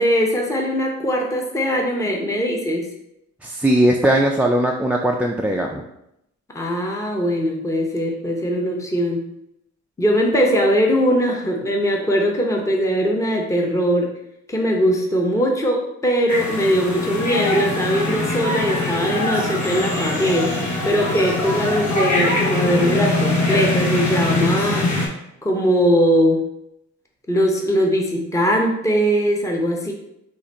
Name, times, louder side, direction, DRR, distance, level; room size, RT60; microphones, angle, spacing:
voice 1, 0.0-2.9 6.5-9.2 10.0-14.1 14.5-20.5 20.8-24.9 25.4-26.4 27.3-29.9, equal, 10° left, 0 dB, 0.7 m, -20 dB
voice 2, 3.4-5.8, right 1 dB, 5° right, 1 dB, 0.3 m, -19 dB
sound 1, 16.3-25.1, left 2 dB, 65° left, 1.3 m, -22 dB
4.8 x 2.5 x 4.1 m, 0.81 s
cardioid pair, 90°, 30 cm